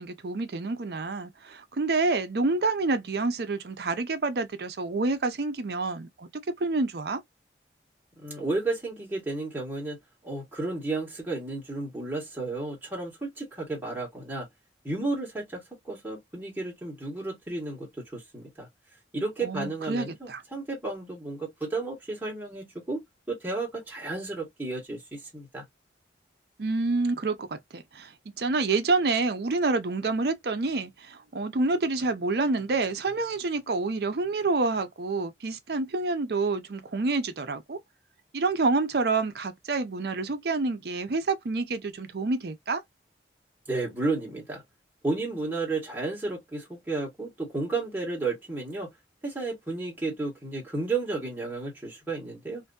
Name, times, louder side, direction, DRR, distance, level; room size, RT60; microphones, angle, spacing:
voice 1, 0.0-7.2 19.4-20.4 26.6-28.1 28.4-37.8 38.3-42.8, right 3 dB, 60° right, 0.5 m, -28 dB
voice 2, 8.2-10.0 10.2-14.5 14.8-18.7 19.1-23.0 23.3-25.6 43.7-44.6 45.0-48.9 49.2-52.6, right 3 dB, 10° right, 1.2 m, -32 dB
2.5 x 2.5 x 2.2 m
head